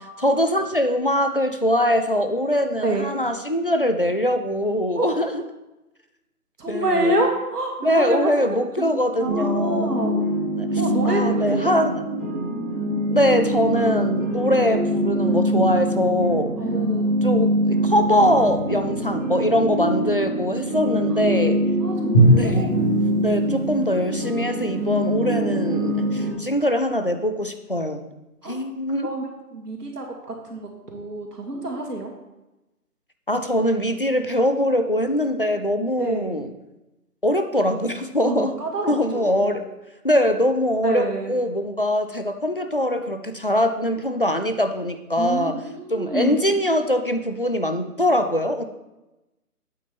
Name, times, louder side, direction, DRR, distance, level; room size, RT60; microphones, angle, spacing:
voice 1, 0.0-5.4 6.7-7.2 7.8-10.0 10.6-12.0 13.1-16.5 17.2-21.6 22.3-22.7 23.2-28.0 28.5-29.1 33.3-36.5 37.2-38.6 38.9-39.6 40.0-45.6 45.9-48.6, equal, 40° left, 7 dB, 0.4 m, -22 dB
voice 2, 6.6-8.3 9.2-10.3 10.8-11.7 16.6-17.1 21.8-23.3 28.4-28.6 29.0-29.3 29.5-30.0 30.5-32.1 36.0-36.4 38.2-39.6 40.8-41.3 45.2-46.4, right 2 dB, 85° right, 1 dB, 2.4 m, -27 dB
sound 1, 9.3-26.3, equal, 55° right, 3.3 m, -24 dB
Drum, 22.1-25.1, right 1 dB, 10° left, 0.9 m, -22 dB
8.4 x 8.2 x 3.4 m, 0.99 s
hypercardioid pair, 165°, 46 cm